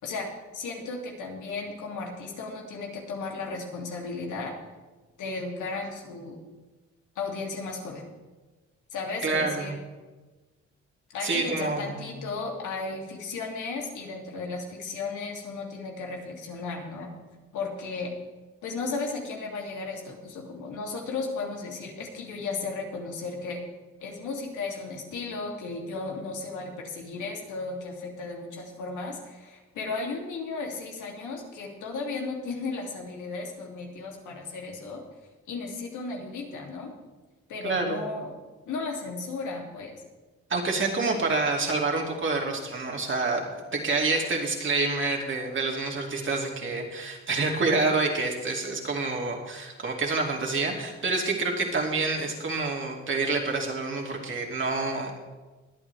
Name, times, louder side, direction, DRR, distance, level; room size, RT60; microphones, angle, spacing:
voice 1, 0.0-4.6 5.2-6.4 7.2-8.0 8.9-9.7 11.1-17.1 17.5-18.1 18.6-23.6 24.0-35.0 35.5-36.9 37.5-38.3 38.7-39.9, left 3 dB, 80° left, 0 dB, 2.8 m, -35 dB
voice 2, 9.2-9.8 11.2-12.2 37.6-38.1 40.5-55.2, right 3 dB, 40° right, 0 dB, 2.7 m, -28 dB
22.5 x 8.5 x 3.4 m, 1.2 s
cardioid pair, 90°, 30 cm